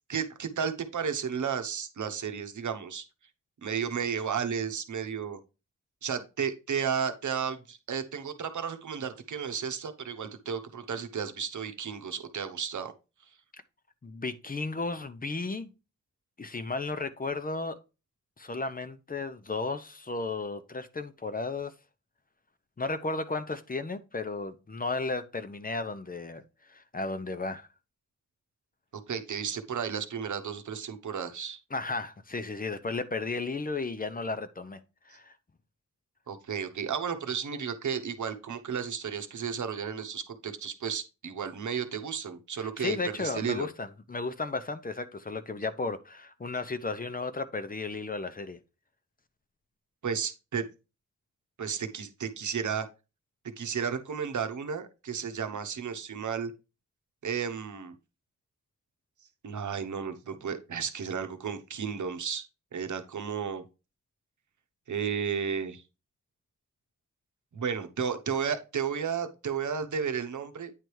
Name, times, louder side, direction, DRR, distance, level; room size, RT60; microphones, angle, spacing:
voice 1, 0.1-3.0 3.6-5.4 6.0-12.9 28.9-31.6 36.3-43.7 50.0-50.6 51.6-52.9 53.4-56.5 57.2-57.9 59.4-62.4 62.7-63.6 64.9-65.8 67.5-70.8, right 7 dB, 80° right, 1.0 m, -33 dB
voice 2, 14.0-15.7 16.4-17.8 18.4-21.7 22.8-27.7 31.7-34.8 35.1-35.3 42.6-48.6, left 3 dB, 30° left, 0.7 m, -34 dB
9.2 x 3.3 x 4.6 m
wide cardioid pair, 125°, 29 cm